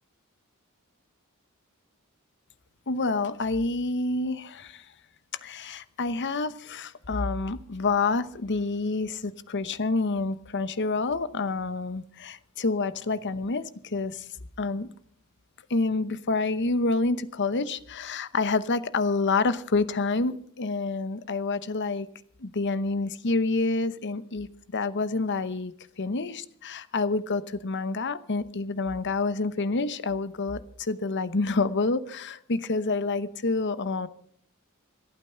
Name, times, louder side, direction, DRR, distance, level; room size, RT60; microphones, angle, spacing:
voice 1, 2.9-4.8 5.4-14.3 14.6-14.9 15.7-22.1 22.4-34.1, left 3 dB, 55° left, 14 dB, 0.9 m, -28 dB
27.0 x 9.0 x 5.7 m, 0.62 s
head